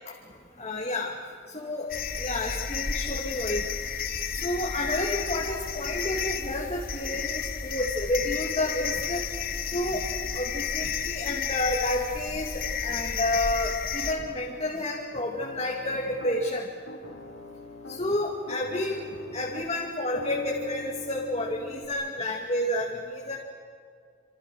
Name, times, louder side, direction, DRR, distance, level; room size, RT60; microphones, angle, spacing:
voice 1, 0.6-1.1 1.5-1.9 2.2-3.7 4.3-9.3 9.7-10.1 10.3-16.7 17.9-19.0 19.3-23.4, left 1 dB, 30° left, -2 dB, 2.3 m, -30 dB
sound 1, 1.9-14.1, left 7 dB, 45° left, 1.3 m, -32 dB
Piano, 15.4-16.4 16.9-18.1 18.5-21.9, equal, 65° left, 4.0 m, -42 dB
27.5 x 27.0 x 6.5 m, 2.2 s
head